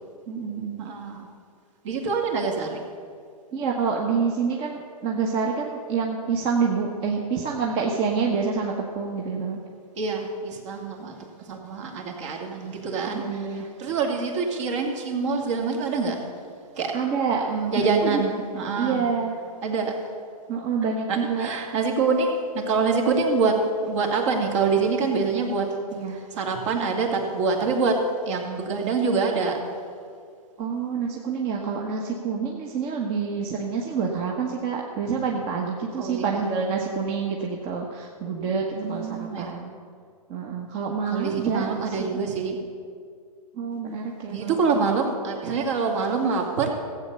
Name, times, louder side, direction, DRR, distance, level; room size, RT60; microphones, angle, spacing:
voice 1, 0.3-0.9 3.5-9.6 13.1-13.7 16.9-17.4 17.8-18.2 18.8-19.4 20.5-21.5 25.9-26.2 30.6-39.7 40.3-42.1 43.5-44.5 44.8-45.0, right 5 dB, 30° right, 0 dB, 1.2 m, -27 dB
voice 2, 0.8-1.3 1.8-2.8 9.9-16.3 16.8-17.0 17.5-19.1 19.6-20.0 21.1-29.6 35.9-36.4 38.4-39.5 41.1-42.6 44.3-46.7, right 4 dB, 50° right, 2 dB, 2.4 m, -26 dB
15.5 x 8.2 x 6.7 m, 2.3 s
hypercardioid pair, 135°, 20 cm